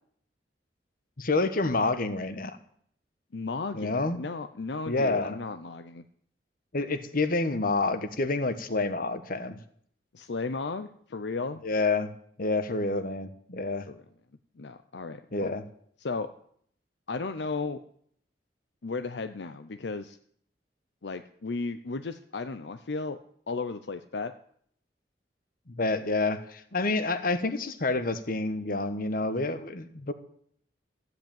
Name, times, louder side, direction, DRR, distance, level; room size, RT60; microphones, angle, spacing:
voice 1, 1.2-2.6 3.7-4.2 4.9-5.4 6.7-9.6 11.6-12.1 12.4-13.9 15.3-15.6 25.7-30.1, left 3 dB, 55° left, 11 dB, 1.3 m, -28 dB
voice 2, 3.3-6.0 10.1-11.6 13.9-14.0 14.6-15.5 16.0-16.3 17.1-17.8 18.8-20.2 21.0-23.2 23.5-24.3, left 3 dB, 75° left, 10 dB, 0.7 m, -35 dB
14.5 x 8.1 x 9.0 m, 0.65 s
head